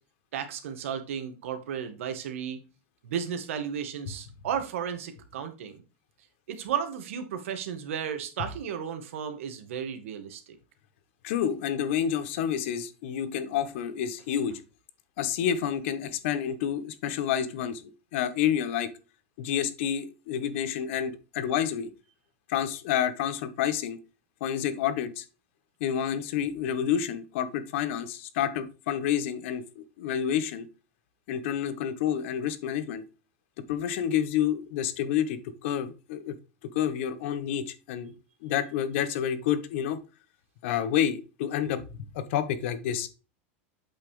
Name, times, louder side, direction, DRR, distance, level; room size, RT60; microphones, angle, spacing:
voice 1, 0.3-2.6 3.0-5.8 6.5-10.6, right 8 dB, 90° right, 8 dB, 1.9 m, -34 dB
voice 2, 11.2-14.6 15.2-17.8 18.1-18.9 19.4-21.9 22.5-24.0 24.4-25.2 25.8-30.7 31.3-33.0 33.7-36.3 36.7-38.1 38.4-40.0 40.6-43.1, left 9 dB, 70° left, 12 dB, 1.3 m, -29 dB
8.2 x 5.9 x 3.3 m, 0.32 s
supercardioid pair, 150°, 7 cm